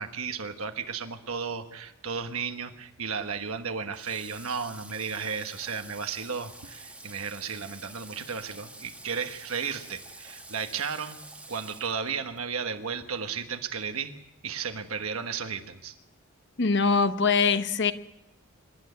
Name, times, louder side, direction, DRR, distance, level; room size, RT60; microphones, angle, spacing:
voice 1, 0.0-11.2 11.5-14.2 14.4-15.9, right 6 dB, 75° right, 6 dB, 1.3 m, -34 dB
Water / Water tap faucet, 3.9-12.4, right 2 dB, 5° right, 1.2 m, -47 dB
voice 2, 16.6-17.9, left 5 dB, 50° left, 11 dB, 1.0 m, -23 dB
26.0 x 12.0 x 9.5 m, 0.92 s
head